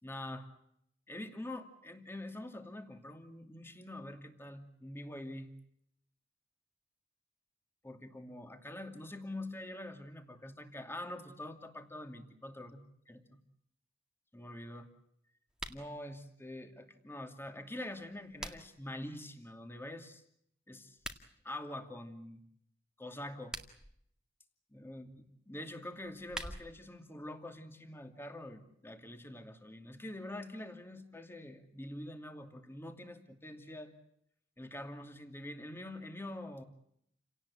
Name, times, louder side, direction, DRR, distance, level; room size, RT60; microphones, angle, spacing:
voice 1, 0.0-0.5 1.1-5.5 7.8-12.8 13.1-13.4 14.3-14.9 15.7-20.2 20.7-21.0 21.4-22.4 23.0-23.6 24.7-25.1 25.5-33.9 34.6-36.6, left 1 dB, 10° left, 6 dB, 2.5 m, -45 dB
sound 1, 15.5-15.9 17.9-18.9 20.9-21.2 23.3-23.9 25.9-26.9, right 1 dB, 5° right, 2.0 m, -45 dB
29.5 x 18.0 x 8.6 m, 0.72 s
head